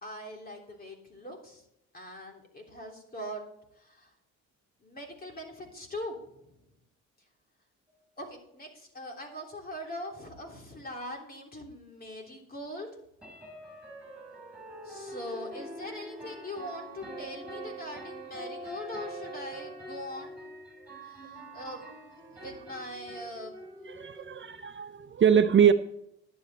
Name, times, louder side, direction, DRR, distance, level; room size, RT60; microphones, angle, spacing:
voice 1, 0.0-1.6 1.9-3.4 3.8-4.1 4.8-6.5 8.2-12.9 14.8-20.4 21.0-21.8 22.3-24.3, left 1 dB, 30° left, 1 dB, 3.3 m, -42 dB
sound 1, 9.3-9.4 9.8-9.9 10.2-10.3 13.2-24.7, right 1 dB, 5° right, 4.6 m, -44 dB
voice 2, 23.9-25.7, right 8 dB, 40° right, 9 dB, 0.6 m, -23 dB
11.0 x 8.6 x 4.2 m, 0.80 s
cardioid pair, 90°, 30 cm